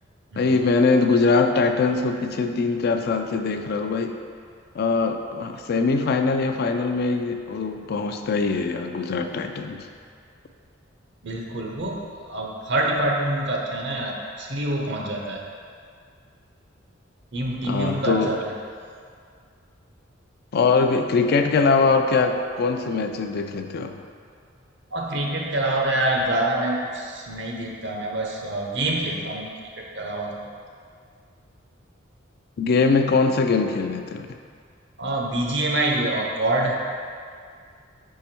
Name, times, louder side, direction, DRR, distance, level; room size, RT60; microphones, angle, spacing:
voice 1, 0.4-4.1 4.8-9.9 17.6-18.4 20.5-24.0 32.6-34.3, left 4 dB, 55° left, 6 dB, 0.4 m, -22 dB
voice 2, 11.2-15.4 17.3-18.5 24.9-29.5 29.8-30.5 35.0-36.8, right 1 dB, 65° right, -1 dB, 0.9 m, -26 dB
5.2 x 4.7 x 4.4 m, 2.2 s
head